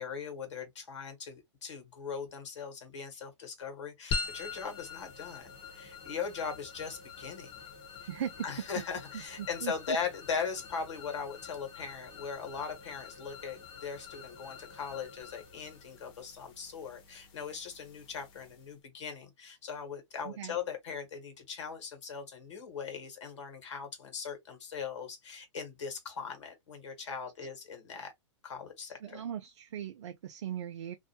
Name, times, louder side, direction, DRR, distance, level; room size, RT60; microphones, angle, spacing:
voice 1, 0.0-7.5 8.0-8.1 8.4-28.1 28.4-29.2, left 6 dB, 70° left, 1.4 m, -39 dB
sound 1, 4.1-18.8, left 4 dB, 35° left, 0.9 m, -45 dB
voice 2, 8.1-8.5 9.1-10.0 20.2-20.6 29.0-30.9, right 9 dB, 70° right, 0.4 m, -39 dB
2.6 x 2.1 x 2.8 m
hypercardioid pair, 115°, 16 cm